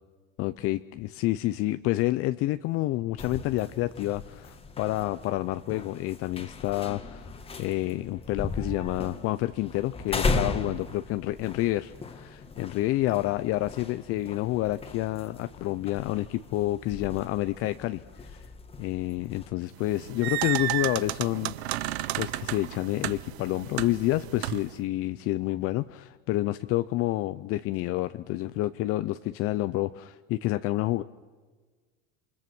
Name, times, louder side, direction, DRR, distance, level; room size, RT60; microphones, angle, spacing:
voice 1, 0.4-18.5 18.8-21.9 22.2-31.0, left 16 dB, 45° left, 12 dB, 0.7 m, -29 dB
sound 1, 3.2-19.5, left 3 dB, 20° left, 1.8 m, -37 dB
sound 2, 19.8-24.8, right 16 dB, 90° right, 0.8 m, -33 dB
27.5 x 24.5 x 6.2 m, 1.4 s
supercardioid pair, 125°, 31 cm